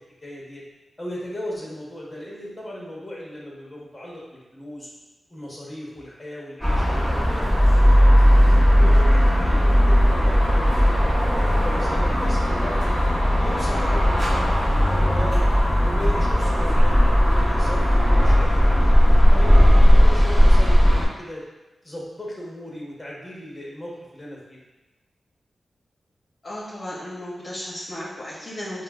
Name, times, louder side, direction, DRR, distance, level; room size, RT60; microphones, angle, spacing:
voice 1, 0.2-0.6 1.0-4.9 5.3-8.1 8.8-11.0 11.3-13.0 13.4-15.4 15.8-19.0 19.3-21.4 21.8-24.6, left 1 dB, 10° left, -4 dB, 0.9 m, -37 dB
sound 1, 6.6-21.0, equal, 10° right, 0.9 m, -17 dB
voice 2, 26.4-28.8, left 1 dB, 40° left, -7 dB, 0.7 m, -34 dB
5.3 x 2.1 x 2.3 m, 1.1 s
wide cardioid pair, 95°, 0 cm